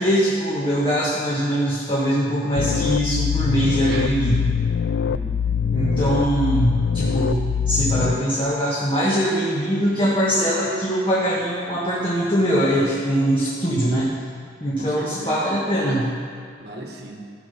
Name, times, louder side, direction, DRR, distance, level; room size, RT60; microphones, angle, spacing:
voice 1, 0.0-4.4 5.7-14.1 14.6-16.1, equal, 30° left, -7 dB, 1.6 m, -22 dB
sound 1, 2.6-8.1, left 7 dB, 75° left, 0.3 m, -23 dB
voice 2, 5.0-5.6 14.8-15.4 16.6-17.2, right 1 dB, 65° right, 1 dB, 1.6 m, -37 dB
16.0 x 5.8 x 5.6 m, 2.2 s
head